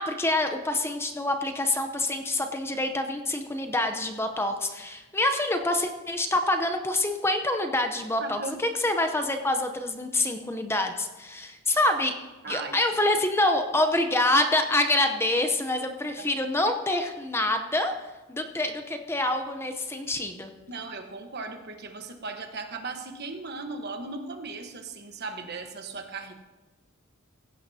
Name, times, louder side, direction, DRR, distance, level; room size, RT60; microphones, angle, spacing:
voice 1, 0.0-12.2 12.5-17.9 18.3-20.5, left 1 dB, 10° left, 6 dB, 0.7 m, -26 dB
voice 2, 8.2-8.6 12.4-12.8 16.2-16.3 20.7-26.3, right 3 dB, 50° right, 5 dB, 1.2 m, -37 dB
17.0 x 15.5 x 2.8 m, 1.2 s
head